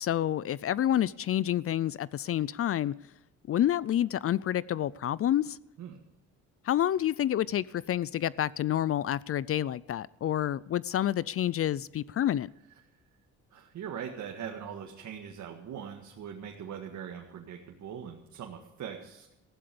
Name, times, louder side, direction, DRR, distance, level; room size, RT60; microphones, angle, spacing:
voice 1, 0.0-2.9 3.5-5.6 6.6-12.5, left 11 dB, 50° left, 21 dB, 0.4 m, -28 dB
voice 2, 13.5-19.3, right 8 dB, 70° right, 1 dB, 1.9 m, -41 dB
15.5 x 11.5 x 7.0 m, 0.94 s
cardioid pair, 90°, 30 cm